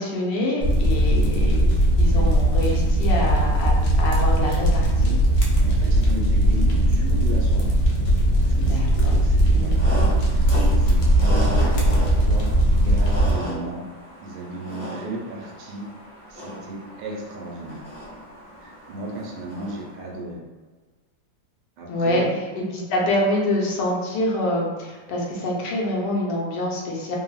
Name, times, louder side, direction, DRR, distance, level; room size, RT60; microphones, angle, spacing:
voice 1, 0.0-5.2 8.5-9.2 9.5-9.7 21.9-22.2 22.7-27.2, left 1 dB, 85° left, -3 dB, 1.3 m, -26 dB
sound 1, 0.6-13.3, right 1 dB, 65° left, 0.9 m, -19 dB
voice 2, 5.6-7.7 8.4-11.3 11.6-11.9 12.2-13.8 14.2-15.8 16.3-17.8 18.6-20.4 21.8-22.4, right 2 dB, 85° right, -2 dB, 1.3 m, -35 dB
sound 2, 9.7-20.1, equal, 30° left, 0.6 m, -35 dB
3.3 x 2.0 x 2.3 m, 1.3 s
omnidirectional pair, 1.9 m